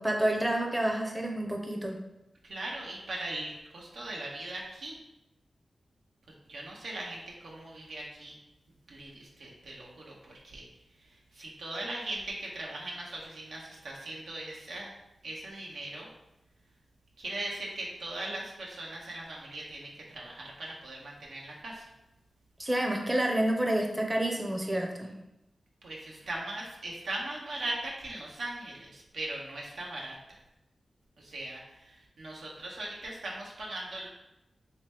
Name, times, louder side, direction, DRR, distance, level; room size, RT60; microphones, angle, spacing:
voice 1, 0.0-2.0 22.6-25.1, right 1 dB, 20° right, 1 dB, 0.6 m, -29 dB
voice 2, 2.4-4.9 6.5-8.3 8.9-10.6 11.3-14.9 15.2-16.1 17.2-21.9 25.8-30.4 31.2-34.1, right 2 dB, 85° right, -3 dB, 0.8 m, -39 dB
3.2 x 2.9 x 3.4 m, 0.91 s
cardioid pair, 50°, 0 cm